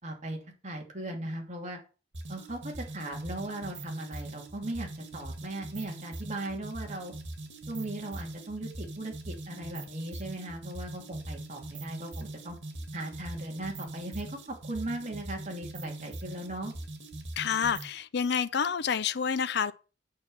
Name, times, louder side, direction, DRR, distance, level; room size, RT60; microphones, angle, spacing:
voice 1, 0.0-1.8 2.3-7.1 7.7-12.6 12.9-16.7, right 1 dB, 40° right, 2.9 m, -38 dB
sound 1, 2.1-18.0, right 2 dB, 85° right, 2.3 m, -42 dB
voice 2, 17.4-19.7, left 6 dB, 65° left, 0.5 m, -28 dB
8.6 x 6.1 x 7.0 m
head